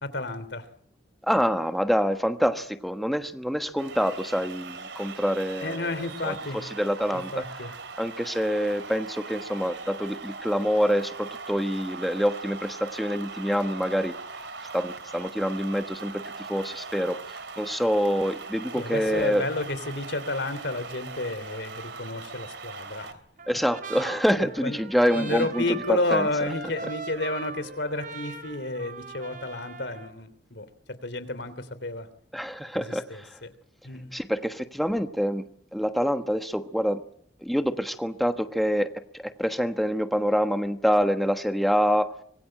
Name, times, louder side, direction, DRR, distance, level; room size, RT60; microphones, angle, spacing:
voice 1, 0.0-0.7 5.6-6.6 7.1-7.7 18.7-23.2 24.4-24.8 25.1-30.7 31.0-32.1 32.7-33.5 33.8-34.1, left 2 dB, 75° left, 14 dB, 3.1 m, -31 dB
voice 2, 1.2-5.9 6.2-6.3 6.8-7.3 8.0-14.1 14.7-16.2 16.5-19.4 23.5-25.6 25.9-26.3 32.3-33.4 34.1-35.5 35.7-37.0 37.4-42.1, equal, ahead, 7 dB, 1.2 m, -26 dB
sound 1, 3.8-23.1, right 4 dB, 80° right, 3.1 m, -40 dB
Trumpet, 23.4-30.1, right 4 dB, 50° right, 3.7 m, -40 dB
25.5 x 22.0 x 7.8 m, 0.63 s
head